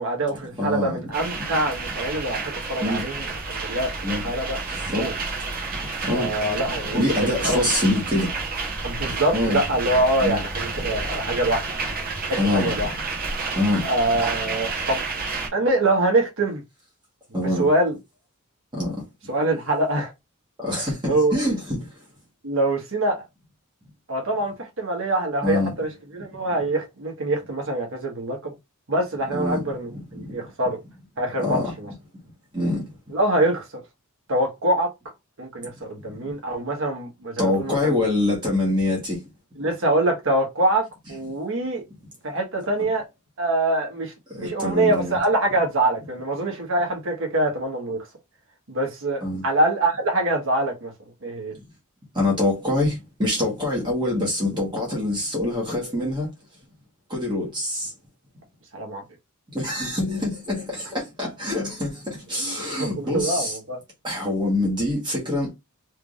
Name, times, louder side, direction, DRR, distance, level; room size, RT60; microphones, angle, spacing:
voice 1, 0.0-4.6 4.9-5.1 6.1-7.6 8.8-11.7 12.2-12.9 13.8-15.0 15.5-16.6 17.3-18.0 19.3-20.1 20.7-21.4 22.4-23.2 24.1-28.5 28.9-30.8 31.2-31.9 33.1-33.6 34.3-34.9 35.4-37.9 39.6-41.8 42.2-43.0 43.4-48.0 48.7-50.9 51.2-51.5 58.7-59.0 62.4-63.8, right 1 dB, 60° right, 1.4 m, -24 dB
voice 2, 0.6-1.0 2.8-3.0 4.0-4.3 4.7-5.1 6.0-6.3 6.9-8.3 9.3-9.6 10.2-10.4 12.4-12.7 13.5-13.9 17.3-17.7 18.7-19.0 20.6-22.0 25.4-25.7 26.3-26.4 29.3-29.6 30.1-30.4 31.4-31.7 32.5-32.8 36.1-36.3 37.4-39.2 44.3-45.2 49.2-49.4 52.1-56.3 57.1-57.9 59.5-63.6 64.0-65.5, left 1 dB, 20° right, 1.3 m, -25 dB
sound 1, 1.1-15.5, right 3 dB, 40° right, 1.0 m, -30 dB
3.4 x 3.3 x 2.5 m
head